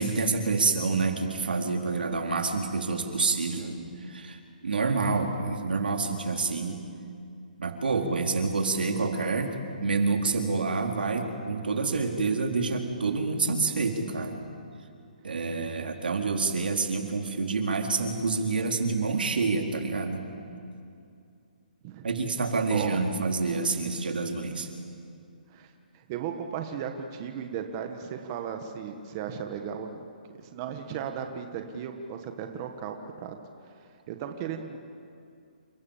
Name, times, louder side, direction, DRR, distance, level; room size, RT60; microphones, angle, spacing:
voice 1, 0.0-6.8 7.6-9.5 9.8-14.4 15.2-20.2 22.0-24.7, right 4 dB, 85° right, 3 dB, 4.0 m, -28 dB
voice 2, 22.7-23.0 25.5-25.7 25.9-30.1 30.4-33.3 34.1-34.8, right 8 dB, 25° right, 5 dB, 1.4 m, -36 dB
29.5 x 27.0 x 7.3 m, 2.5 s
hypercardioid pair, 170°, 5 cm